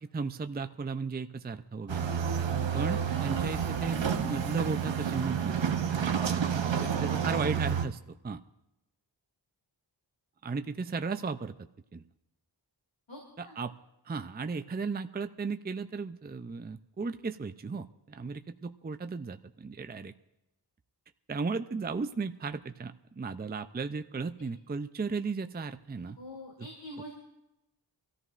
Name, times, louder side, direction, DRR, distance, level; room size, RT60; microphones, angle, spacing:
voice 1, 0.0-2.1 2.7-5.6 6.9-8.4 10.4-11.5 11.9-12.0 13.4-13.7 14.1-20.1 21.3-26.2, right 4 dB, 25° right, 9 dB, 0.5 m, -35 dB
sound 1, 1.9-7.9, right 7 dB, 80° right, 0.9 m, -30 dB
voice 2, 6.7-7.4 13.1-13.6 26.0-27.1, left 1 dB, 80° left, -1 dB, 3.0 m, -45 dB
25.5 x 14.0 x 2.5 m, 0.89 s
wide cardioid pair, 60°, 44 cm